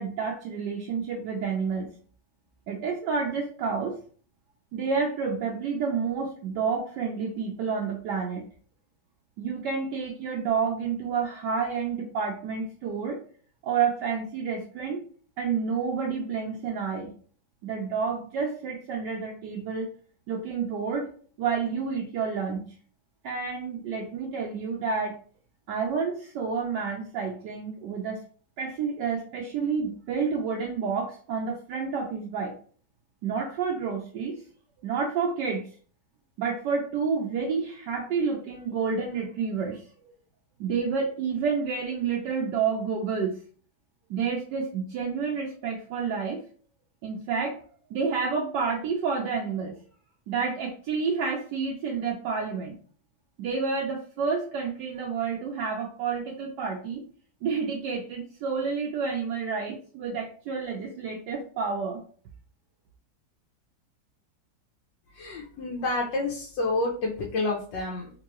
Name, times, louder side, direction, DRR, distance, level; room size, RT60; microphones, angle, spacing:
voice 1, 0.0-2.0 2.7-4.0 4.7-8.4 9.4-13.2 13.6-15.0 15.4-17.1 17.6-19.9 20.3-21.1 21.4-22.6 23.2-25.2 25.7-28.2 28.6-32.5 33.2-34.4 34.8-35.6 36.4-40.1 40.6-43.4 44.1-46.4 47.0-47.6 47.9-49.8 50.3-52.8 53.4-57.0 57.4-62.0, right 5 dB, 70° right, 0 dB, 1.2 m, -29 dB
voice 2, 65.1-68.1, left 2 dB, 75° left, -2 dB, 1.4 m, -29 dB
3.6 x 3.0 x 3.0 m, 0.43 s
omnidirectional pair, 2.0 m